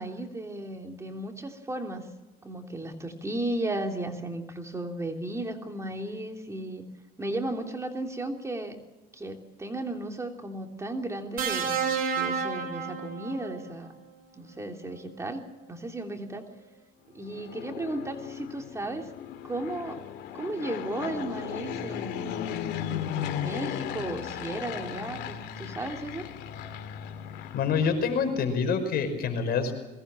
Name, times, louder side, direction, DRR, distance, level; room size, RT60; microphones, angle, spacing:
voice 1, 0.0-2.1 2.4-6.8 7.2-8.8 9.1-11.8 12.1-13.9 14.3-16.4 17.1-19.1 19.4-20.0 20.3-22.4 22.9-26.3, right 2 dB, 15° right, 3 dB, 3.2 m, -35 dB
sound 1, 11.4-13.6 15.0-15.2, right 6 dB, 55° right, 4.1 m, -30 dB
Fixed-wing aircraft airplane, 17.1-28.2, left 9 dB, 85° left, 2.6 m, -36 dB
voice 2, 27.5-29.7, left 6 dB, 65° left, 7 dB, 5.4 m, -26 dB
22.5 x 19.0 x 7.6 m, 1.1 s
cardioid pair, 110°, 17 cm